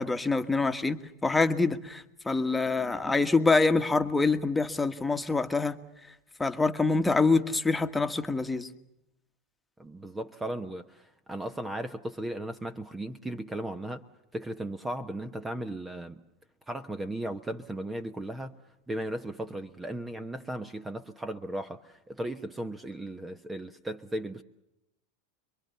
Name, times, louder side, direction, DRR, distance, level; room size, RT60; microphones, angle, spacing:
voice 1, 0.0-5.8 6.4-8.7, left 3 dB, 10° left, 1.6 m, -26 dB
voice 2, 9.8-14.0 14.3-16.2 16.7-18.6 18.9-24.4, right 1 dB, 10° right, 1.1 m, -36 dB
27.0 x 23.0 x 6.9 m
hypercardioid pair, 100°, 0 cm